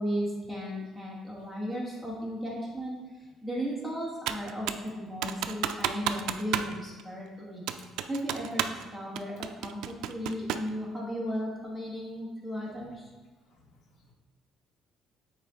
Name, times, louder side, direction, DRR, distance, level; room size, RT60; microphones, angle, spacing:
voice 1, 0.0-3.0 3.4-4.7 4.9-7.6 8.1-13.1, equal, 5° left, -4 dB, 1.9 m, -35 dB
Computer keyboard, 4.3-4.9 5.2-6.7 7.0-7.1 7.7-8.8 9.2-10.7, right 10 dB, 80° right, 0.4 m, -32 dB
voice 2, 13.4-14.1, left 2 dB, 65° left, -1 dB, 1.5 m, -62 dB
8.7 x 4.6 x 3.9 m, 1.3 s
cardioid pair, 135°, 0 cm